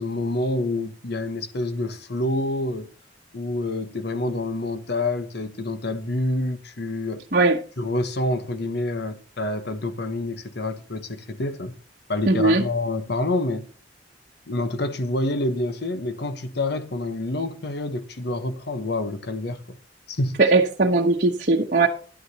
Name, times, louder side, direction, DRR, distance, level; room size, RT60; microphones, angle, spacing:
voice 1, 0.0-2.9 3.3-7.3 7.8-11.7 12.1-13.7 14.5-19.8 20.1-20.4, left 2 dB, 65° left, 1.1 m, -27 dB
voice 2, 12.3-12.6 20.4-21.9, right 3 dB, 50° right, 1.0 m, -19 dB
11.5 x 9.8 x 2.9 m
head